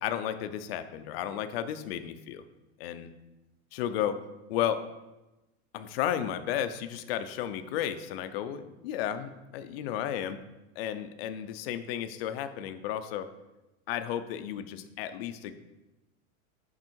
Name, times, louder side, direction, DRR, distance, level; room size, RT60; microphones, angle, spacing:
voice 1, 0.0-2.4 2.8-3.1 3.7-4.2 4.5-4.8 5.7-10.4 10.8-13.3 13.9-15.5, left 10 dB, 45° left, 10 dB, 0.4 m, -33 dB
6.1 x 5.4 x 4.4 m, 1.0 s
supercardioid pair, 175°, 42 cm